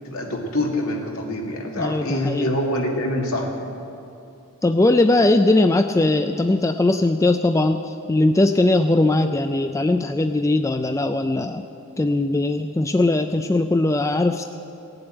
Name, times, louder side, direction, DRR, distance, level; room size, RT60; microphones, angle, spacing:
voice 1, 0.1-3.5, left 1 dB, 75° left, 0 dB, 2.3 m, -25 dB
voice 2, 1.8-2.5 4.6-11.6 12.0-14.4, left 2 dB, 15° left, 7 dB, 0.3 m, -20 dB
17.5 x 7.8 x 8.9 m, 2.7 s
head